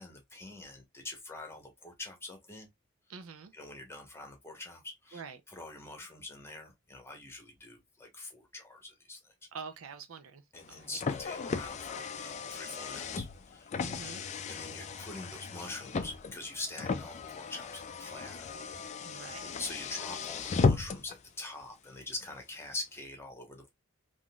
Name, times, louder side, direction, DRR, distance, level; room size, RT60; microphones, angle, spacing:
voice 1, 0.0-2.7 3.5-5.2 5.5-9.3 10.5-14.2 14.5-18.5 19.1-19.3 19.6-23.7, left 2 dB, 10° left, 0.9 m, -44 dB
voice 2, 3.1-3.5 5.1-5.4 9.5-10.4 10.7-10.9 13.8-14.2 19.1-19.5, right 5 dB, 80° right, 0.5 m, -45 dB
Car, 10.5-21.2, left 4 dB, 35° left, 0.3 m, -35 dB
3.7 x 2.5 x 2.2 m
head